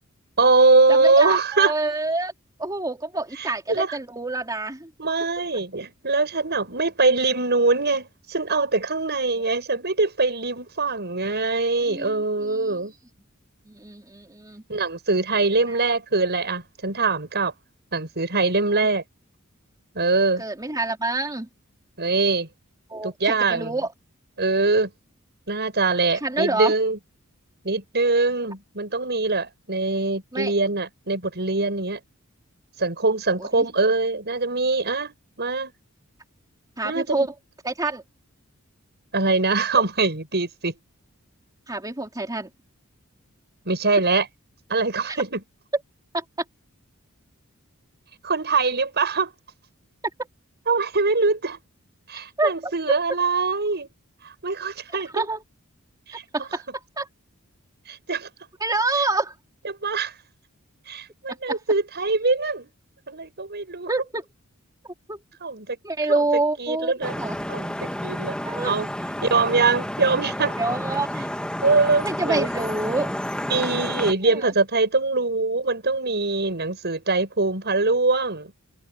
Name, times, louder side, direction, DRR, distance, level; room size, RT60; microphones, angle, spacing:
voice 1, 0.4-1.7 3.4-4.0 5.0-12.9 14.7-17.5 17.9-19.0 19.9-20.4 22.0-22.5 23.0-23.8 24.4-24.9 25.5-27.0 27.6-32.0 32.8-35.7 36.8-37.3 39.1-40.7 43.6-44.3 44.7-45.4 48.2-49.3 50.7-51.6 52.1-53.9 54.2-55.2 56.1-56.2 57.9-58.3 59.6-60.1 60.9-62.7 63.1-63.9 65.4-65.8 66.6-67.2 67.5-68.3 68.6-68.9 69.3-70.6 71.6-72.5 73.5-78.5, right 3 dB, 50° right, 7.9 m, -23 dB
voice 2, 0.9-2.3 2.6-4.9 11.9-12.1 12.4-12.8 13.7-14.6 15.7-15.8 20.4-21.5 22.9-23.9 26.1-26.7 30.3-30.5 33.4-33.7 36.8-37.3 37.6-38.0 41.7-42.5 45.1-45.2 46.1-46.2 52.4-52.7 55.1-55.4 56.3-57.1 58.6-59.3 61.3-61.6 63.9-64.3 65.1-65.2 65.8-67.4 68.4-68.8 70.6-71.2 72.0-73.1 74.2-74.5, right 2 dB, 20° right, 3.5 m, -27 dB
Vehicle horn car horn honking / Traffic noise roadway noise, 67.0-74.1, equal, 5° left, 1.4 m, -30 dB
head